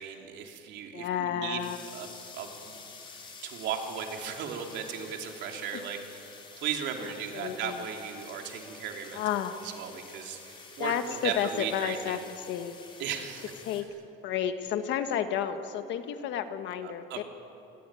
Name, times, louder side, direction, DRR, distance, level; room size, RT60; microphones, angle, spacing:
voice 1, 0.0-1.7 1.9-2.8 3.1-6.2 6.6-9.2 9.6-12.2 13.0-13.5 16.8-17.2, right 7 dB, 60° right, 2 dB, 3.4 m, -36 dB
voice 2, 0.9-1.8 5.7-5.8 7.3-7.9 9.1-9.6 10.8-12.2 12.5-12.8 13.6-13.9 14.2-17.2, left 9 dB, 60° left, 8 dB, 1.7 m, -31 dB
sound 1, 1.6-13.8, left 4 dB, 25° left, 4.2 m, -49 dB
27.5 x 21.5 x 9.2 m, 2.9 s
cardioid pair, 180°, 21 cm